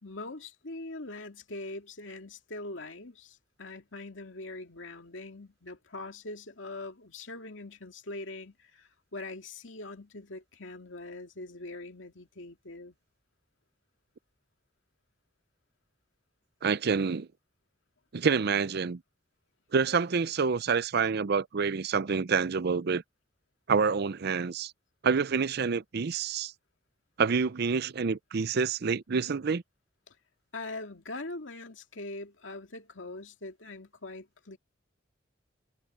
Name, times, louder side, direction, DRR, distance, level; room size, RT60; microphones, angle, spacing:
voice 1, 0.0-12.9 30.1-30.2 30.5-34.6, left 2 dB, 75° left, 2.4 m, -42 dB
voice 2, 16.6-17.3 18.1-19.0 19.7-23.0 23.7-24.7 25.0-26.5 27.2-29.6, right 5 dB, 55° right, 0.5 m, -27 dB
head